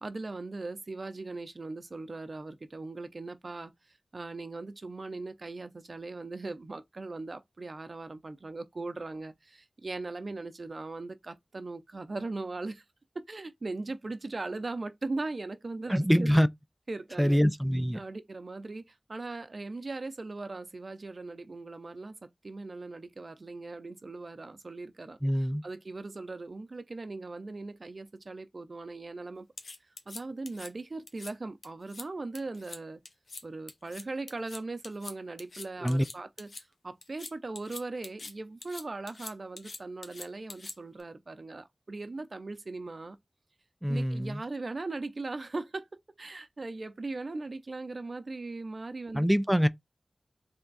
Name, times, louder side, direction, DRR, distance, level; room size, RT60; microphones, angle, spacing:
voice 1, 0.0-12.8 13.1-16.4 16.9-17.4 17.9-29.5 30.1-33.0 33.4-43.2 43.9-45.9 46.2-49.3, right 3 dB, 60° right, 0.6 m, -39 dB
voice 2, 15.9-16.5 17.2-18.0 25.2-25.6 35.8-36.0 43.8-44.4 49.1-49.7, equal, ahead, 0.4 m, -25 dB
sound 1, 29.6-30.7 31.1-31.3 31.6-32.1 32.3-32.8 33.1-33.4 33.7-36.6 37.0-38.3 38.6-41.0, left 3 dB, 90° left, 0.7 m, -44 dB
3.6 x 3.4 x 4.0 m
wide cardioid pair, 65°, 0 cm